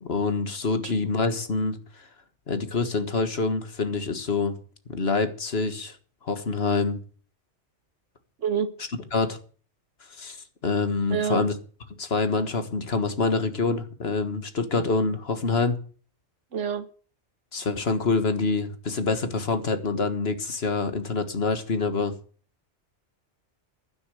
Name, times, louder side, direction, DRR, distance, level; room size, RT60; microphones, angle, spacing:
voice 1, 0.0-1.8 2.5-4.6 4.9-6.0 6.2-7.0 9.1-9.4 10.2-10.4 10.6-11.5 12.0-15.8 17.5-22.1, left 4 dB, 60° left, 1.8 m, -26 dB
voice 2, 8.4-8.7 11.1-11.4 16.5-16.9, right 7 dB, 80° right, 1.6 m, -27 dB
11.5 x 9.8 x 7.7 m
omnidirectional pair, 1.2 m